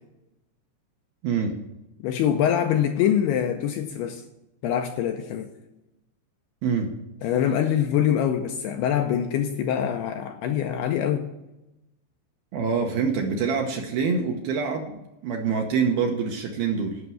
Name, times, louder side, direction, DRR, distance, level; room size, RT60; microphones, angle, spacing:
voice 1, 2.0-4.2 4.6-5.5 7.2-11.3, left 9 dB, 80° left, 2.4 m, -24 dB
voice 2, 12.5-15.0 15.2-17.0, right 5 dB, 70° right, 2.4 m, -25 dB
11.5 x 6.0 x 7.6 m
omnidirectional pair, 5.2 m